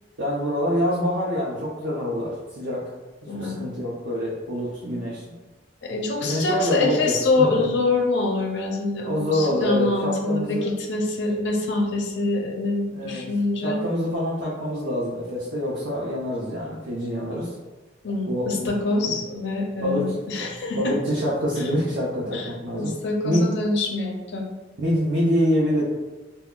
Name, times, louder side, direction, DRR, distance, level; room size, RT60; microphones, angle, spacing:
voice 1, 0.2-2.8 3.4-5.2 6.2-7.1 7.6-7.7 9.0-10.7 12.9-13.2 13.6-17.5 18.3-18.7 19.8-20.1 20.4-20.5 20.7-22.9 23.2-23.4 24.8-25.8, equal, 80° right, -6 dB, 0.6 m, -25 dB
voice 2, 3.3-3.7 5.8-13.8 18.0-21.0 22.3-24.5, left 3 dB, 75° left, 1 dB, 0.6 m, -25 dB
2.3 x 2.1 x 3.6 m, 1.2 s
head